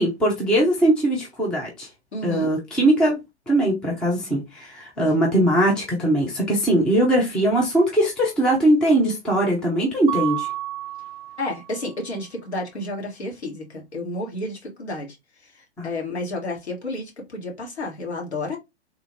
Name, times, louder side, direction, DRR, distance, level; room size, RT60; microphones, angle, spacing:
voice 1, 0.0-1.9 2.2-3.2 3.5-10.5 15.8-15.9, right 1 dB, ahead, 0.4 m, -20 dB
voice 2, 2.1-2.5 11.4-15.2 15.4-18.6, left 2 dB, 70° left, 1.6 m, -31 dB
Mallet percussion, 10.1-11.9, right 13 dB, 50° right, 0.6 m, -31 dB
3.4 x 2.4 x 3.1 m
figure-of-eight pair, 110°, 34 cm